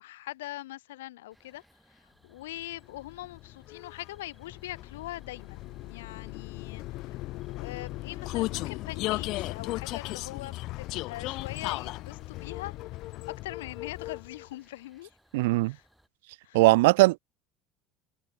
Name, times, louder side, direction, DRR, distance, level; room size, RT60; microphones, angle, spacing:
voice 1, 0.0-12.9 13.2-15.2 15.7-15.8 16.4-16.6, left 16 dB, 90° left, 3.3 m, -42 dB
sound 1, 1.3-16.1, equal, ahead, 6.8 m, -64 dB
Vehicle, 2.6-14.5, left 19 dB, 65° left, 0.9 m, -36 dB
voice 2, 15.3-15.8 16.5-17.2, right 21 dB, 85° right, 0.4 m, -20 dB
supercardioid pair, 80°, 0 cm